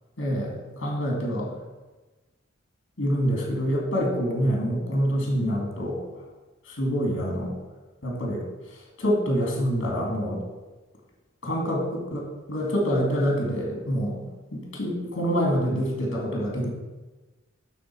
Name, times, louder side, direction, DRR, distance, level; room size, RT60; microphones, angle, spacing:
voice 1, 0.2-1.5 3.0-6.0 6.7-7.6 8.0-8.4 8.7-10.4 11.4-14.2 14.5-16.7, equal, 70° left, -1 dB, 2.3 m, -26 dB
11.5 x 3.9 x 4.6 m, 1.2 s
head